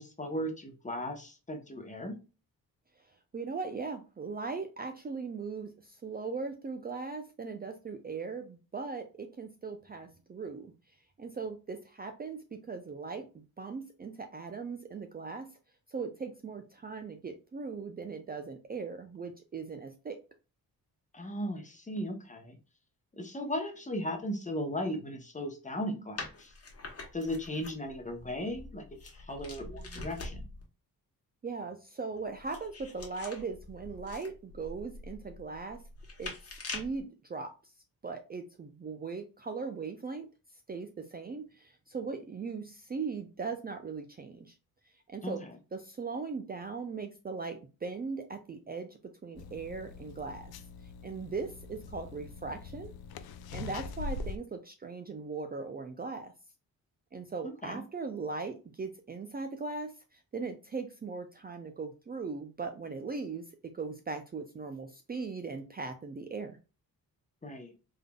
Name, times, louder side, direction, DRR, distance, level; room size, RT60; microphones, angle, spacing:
voice 1, 0.0-2.2 21.1-22.6 23.1-26.5 27.1-30.4 45.2-45.6 57.4-57.8 67.4-67.7, equal, 20° left, 5 dB, 0.9 m, -37 dB
voice 2, 3.3-10.7 11.2-13.3 13.6-15.5 15.9-20.2 31.4-35.8 36.2-37.7 38.0-40.3 40.7-44.5 45.1-45.4 45.7-50.5 51.0-52.9 53.5-56.3 57.1-63.4 63.7-66.6, right 4 dB, 25° right, 5 dB, 0.4 m, -39 dB
sound 1, 26.2-30.7 32.1-37.0, left 3 dB, 40° left, 1.2 m, -45 dB
sound 2, 49.4-54.4, left 4 dB, 80° left, 0.5 m, -43 dB
3.6 x 3.5 x 2.2 m, 0.32 s
cardioid pair, 90°, 36 cm